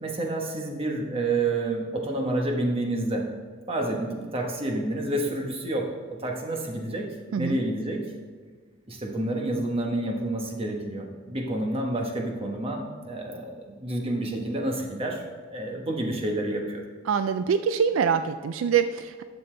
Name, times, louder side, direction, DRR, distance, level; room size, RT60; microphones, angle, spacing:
voice 1, 0.0-3.3 3.7-7.1 7.4-8.0 8.9-15.2 15.5-16.8, right 2 dB, 30° right, 1 dB, 1.2 m, -29 dB
voice 2, 17.1-19.2, right 7 dB, 80° right, 10 dB, 0.3 m, -24 dB
11.5 x 6.9 x 3.3 m, 1.5 s
head